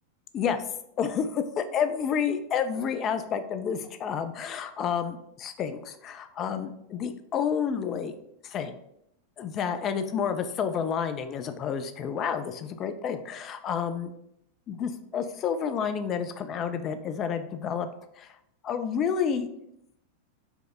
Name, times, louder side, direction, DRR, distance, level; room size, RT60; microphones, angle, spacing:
voice 1, 1.0-8.2 8.4-8.8 9.4-14.1 14.7-17.9 18.2-18.3 18.6-19.5, left 7 dB, 30° left, 9 dB, 0.3 m, -30 dB
4.8 x 2.0 x 3.2 m, 0.79 s
figure-of-eight pair, 90°, 0 cm